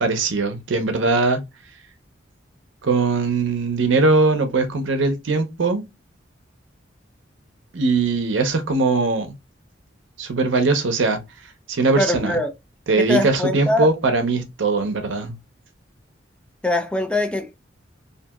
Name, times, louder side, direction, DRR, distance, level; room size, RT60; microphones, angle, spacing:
voice 1, 0.0-1.4 2.8-5.8 7.7-9.3 10.2-11.2 11.7-12.4 12.9-15.3, right 3 dB, 85° right, 0.6 m, -20 dB
voice 2, 12.0-12.5 13.0-13.9 16.6-17.7, left 2 dB, 5° left, 0.4 m, -22 dB
2.7 x 2.5 x 2.3 m
head